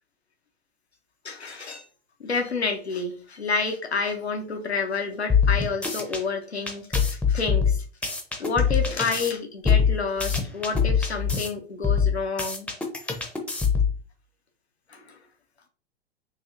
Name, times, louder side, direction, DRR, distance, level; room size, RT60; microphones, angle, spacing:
voice 1, 1.2-1.8 2.2-7.8 8.4-12.7 14.9-15.2, left 4 dB, 80° left, 4 dB, 0.9 m, -29 dB
sound 1, 5.3-6.2 6.7-9.3 9.6-11.5 11.8-14.0, left 6 dB, 5° left, 0.8 m, -23 dB
6.9 x 2.8 x 2.6 m, 0.41 s
figure-of-eight pair, 95°, 32 cm